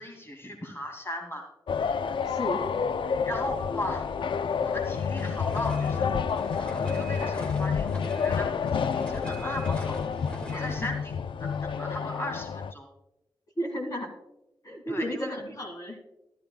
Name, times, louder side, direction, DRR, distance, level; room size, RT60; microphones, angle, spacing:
voice 1, 0.0-1.5 3.2-4.1 4.6-10.0 10.3-11.0 11.4-12.9 14.9-15.3, left 1 dB, 30° left, 2 dB, 2.3 m, -37 dB
sound 1, 1.7-12.7, left 6 dB, 70° left, 0.4 m, -29 dB
voice 2, 2.3-2.6 10.5-10.9 13.6-14.1 14.6-16.0, equal, 45° left, 0 dB, 2.4 m, -33 dB
sound 2, 5.2-10.8, equal, 15° left, 2.0 m, -42 dB
13.5 x 12.5 x 2.3 m, 0.93 s
wide cardioid pair, 85°, 9 cm